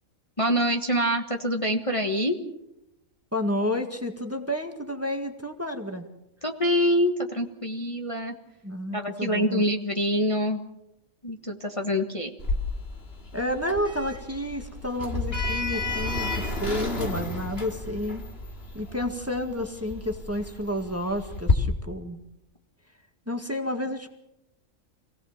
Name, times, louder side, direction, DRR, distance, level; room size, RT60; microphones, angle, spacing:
voice 1, 0.4-2.4 6.4-8.3 8.9-10.6 11.2-12.3, equal, 25° left, 2 dB, 1.5 m, -25 dB
voice 2, 3.3-6.1 8.6-9.6 13.3-18.2 18.7-22.2 23.3-24.1, left 1 dB, 10° right, 5 dB, 1.8 m, -30 dB
Sliding door, 12.4-21.5, left 2 dB, 45° left, 3.0 m, -31 dB
27.0 x 18.0 x 7.4 m, 0.87 s
omnidirectional pair, 1.4 m